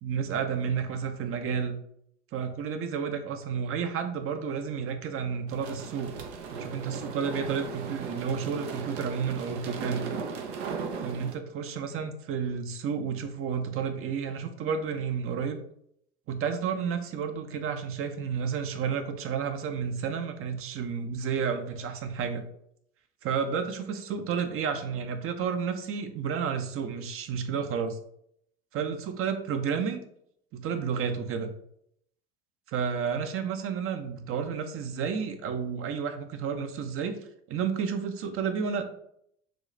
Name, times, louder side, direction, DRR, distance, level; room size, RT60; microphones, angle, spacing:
voice 1, 0.0-1.7 2.3-6.1 6.5-10.1 11.0-15.6 16.3-22.4 23.2-28.0 28.7-30.0 30.5-31.5 32.7-37.2 37.5-38.8, right 6 dB, 40° right, 7 dB, 0.7 m, -31 dB
sound 1, 5.5-11.3, right 5 dB, 70° right, 0.7 m, -37 dB
6.1 x 2.4 x 3.2 m, 0.71 s
hypercardioid pair, 70°, 34 cm